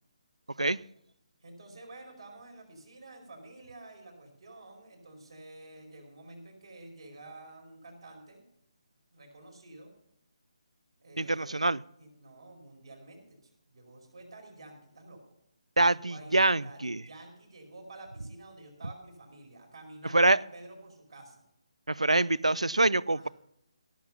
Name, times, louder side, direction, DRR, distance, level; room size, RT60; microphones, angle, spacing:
voice 1, 1.4-8.4 9.1-10.0 11.0-11.7 12.0-15.2 15.9-16.3 16.6-21.4 23.1-23.3, right 2 dB, 60° right, 1 dB, 4.9 m, -50 dB
voice 2, 11.2-11.8 15.8-17.0 20.1-20.4 21.9-23.3, right 2 dB, 85° right, 24 dB, 0.4 m, -25 dB
16.5 x 7.4 x 5.6 m, 0.77 s
figure-of-eight pair, 145°, 3 cm